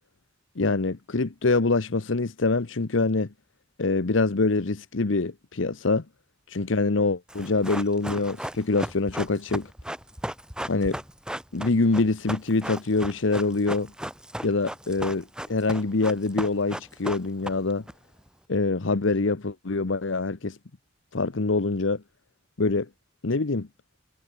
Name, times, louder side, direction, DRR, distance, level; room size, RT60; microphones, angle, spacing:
voice 1, 0.6-3.3 3.8-6.0 6.5-9.7 10.7-11.0 11.5-13.9 14.4-17.8 18.5-20.6 21.1-22.0 22.6-22.9 23.2-23.7, left 3 dB, 70° left, 1.0 m, -25 dB
Run, 7.3-17.9 18.2-18.3, equal, 5° right, 3.5 m, -35 dB
head